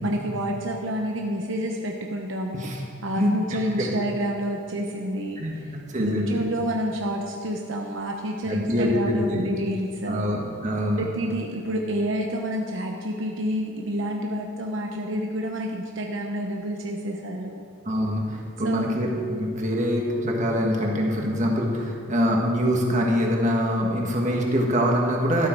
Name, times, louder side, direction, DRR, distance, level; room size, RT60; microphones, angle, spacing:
voice 1, 0.0-2.7 3.0-5.4 6.0-10.3 11.0-17.6 18.6-19.0, equal, 70° right, 1 dB, 1.0 m, -28 dB
voice 2, 5.9-6.4 8.4-9.4 10.1-11.1 17.9-25.5, equal, 35° right, -1 dB, 1.8 m, -24 dB
13.0 x 12.0 x 4.7 m, 2.3 s
head